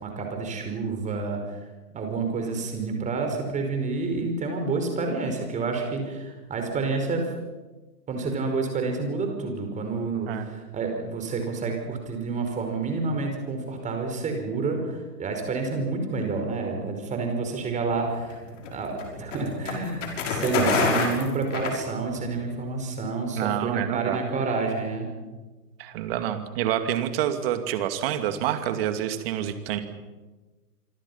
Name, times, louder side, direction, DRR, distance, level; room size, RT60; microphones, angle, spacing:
voice 1, 0.0-1.6 1.9-7.3 8.1-18.4 18.7-25.1, right 4 dB, 15° right, 4 dB, 5.2 m, -29 dB
sound 1, 17.9-22.4, left 4 dB, 50° left, 6.6 m, -28 dB
voice 2, 23.4-24.2 25.8-29.8, right 11 dB, 35° right, 8 dB, 2.6 m, -27 dB
27.5 x 24.5 x 5.8 m, 1.2 s
figure-of-eight pair, 120°, 47 cm